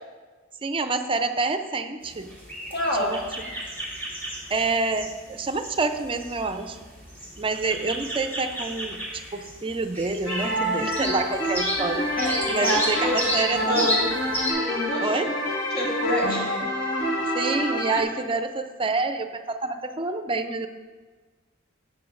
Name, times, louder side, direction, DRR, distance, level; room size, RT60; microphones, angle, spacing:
voice 1, 0.6-2.3 3.0-3.2 4.5-6.8 7.4-12.1 12.5-14.1 15.0-15.4 17.3-20.7, right 3 dB, 25° right, 9 dB, 0.5 m, -27 dB
sound 1, 2.0-14.5, equal, 10° left, 2.4 m, -33 dB
voice 2, 2.7-3.1 12.2-13.1 13.7-14.1 14.6-15.1 15.7-16.6, left 1 dB, 50° left, -3 dB, 1.4 m, -27 dB
sound 2, 10.3-18.0, equal, 70° left, 1.7 m, -27 dB
12.0 x 8.7 x 2.5 m, 1.4 s
head